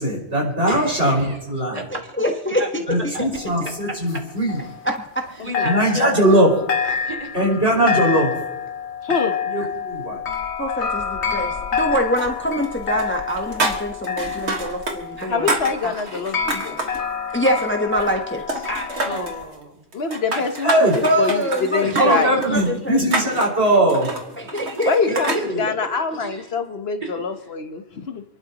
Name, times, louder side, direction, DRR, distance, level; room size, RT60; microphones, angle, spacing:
voice 1, 0.0-1.8 2.9-4.6 5.6-6.5 7.3-8.3 9.5-10.2 20.6-20.9 22.0-24.1 25.1-25.6, right 1 dB, 70° right, -4 dB, 5.7 m, -20 dB
voice 2, 0.7-2.0 2.6-2.7 2.9-3.3 3.6-3.7 5.4-6.4 6.8-7.3 9.6-9.7 11.3-11.4 15.2-15.3 15.8-16.2 17.3-17.4 18.7-19.8 20.3-20.4 21.8-22.6 23.7-23.8 24.5-25.4 26.1-26.5 27.0-27.2, right 1 dB, 35° right, 1 dB, 3.0 m, -33 dB
voice 3, 2.2-2.6 4.8-5.4 10.6-15.5 16.5-16.6 16.9-17.0 17.3-18.7 21.0-23.3 24.4-24.9 25.8-26.0, equal, 10° left, 3 dB, 1.0 m, -24 dB
sound 1, 3.4-5.3 5.5-19.4, left 6 dB, 85° left, 1.6 m, -28 dB
voice 4, 5.4-5.7 9.0-9.4 15.3-16.4 16.6-16.8 19.9-22.3 24.9-28.2, left 5 dB, 65° left, 7 dB, 1.3 m, -25 dB
sound 2, 12.2-12.7 13.0-15.0 15.2-17.0 17.4-18.2 18.5-19.4 19.9-25.5, right 2 dB, 85° right, 2.0 m, -28 dB
29.0 x 11.5 x 3.0 m, 0.91 s
omnidirectional pair, 1.1 m